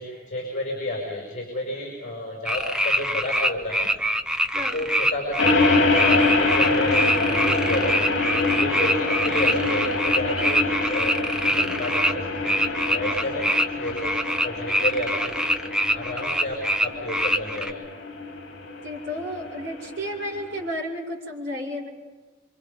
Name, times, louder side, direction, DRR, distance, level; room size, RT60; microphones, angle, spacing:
voice 1, 0.0-3.9 4.5-11.2 11.4-12.6 12.9-14.2 14.4-17.8, left 1 dB, 40° left, -2 dB, 6.0 m, -31 dB
sound 1, 2.5-12.1 12.4-17.7, equal, 5° right, 0.8 m, -24 dB
voice 2, 4.5-4.8 18.8-21.9, equal, 60° right, -5 dB, 6.2 m, -32 dB
sound 2, 5.4-20.7, left 3 dB, 60° left, 2.9 m, -26 dB
28.0 x 24.5 x 5.4 m, 1.4 s
head